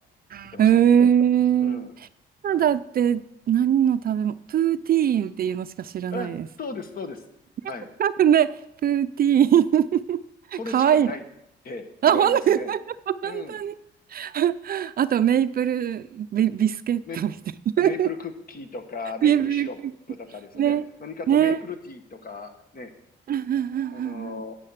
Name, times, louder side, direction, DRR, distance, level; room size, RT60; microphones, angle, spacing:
voice 1, 0.3-1.9 2.4-6.5 8.0-8.5 8.8-10.2 10.5-11.1 12.0-12.8 13.1-13.7 14.1-17.3 17.8-18.1 19.2-19.7 20.6-20.8 21.3-21.6 23.3-24.4, right 9 dB, 50° right, 14 dB, 0.4 m, -22 dB
voice 2, 1.6-1.9 6.1-6.3 6.6-7.2 7.7-7.9 10.5-11.2 11.6-12.7 13.2-13.6 17.1-17.2 17.8-19.8 20.1-22.9 23.9-24.5, left 3 dB, 45° left, 8 dB, 1.5 m, -36 dB
9.9 x 8.4 x 5.8 m, 0.78 s
cardioid pair, 90°, 20 cm